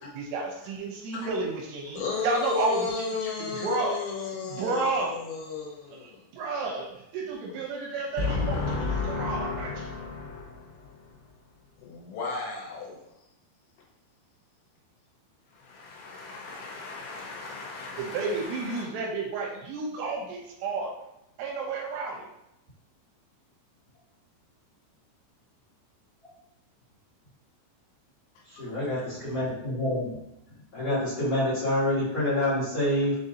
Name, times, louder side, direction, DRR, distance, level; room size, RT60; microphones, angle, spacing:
voice 1, 0.0-3.1 3.4-5.2 6.0-9.9 18.0-21.0 21.4-22.3, right 3 dB, 85° right, -2 dB, 2.8 m, -31 dB
voice 2, 1.9-6.2 8.2-11.1 11.8-13.0 15.5-18.8 28.5-28.7, left 4 dB, 90° left, -3 dB, 3.4 m, -34 dB
voice 3, 28.6-30.1 30.7-33.2, left 1 dB, 50° left, -11 dB, 1.9 m, -27 dB
6.9 x 2.7 x 2.6 m, 0.85 s
omnidirectional pair, 5.1 m